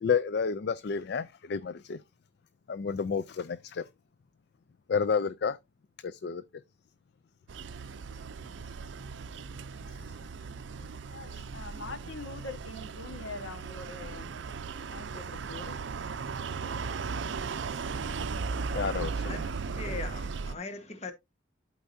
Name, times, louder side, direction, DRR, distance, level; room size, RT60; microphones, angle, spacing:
voice 1, 0.0-2.0 2.7-3.8 4.9-5.6 6.0-6.4 11.3-11.4 18.7-19.5, left 6 dB, 55° left, 0.4 m, -30 dB
sound 1, 7.5-20.5, right 5 dB, 70° right, 0.5 m, -37 dB
voice 2, 11.1-14.3 14.8-15.8, left 3 dB, 80° left, 1.4 m, -43 dB
voice 3, 19.8-21.1, left 3 dB, 35° left, 1.3 m, -39 dB
11.5 x 4.7 x 2.6 m
head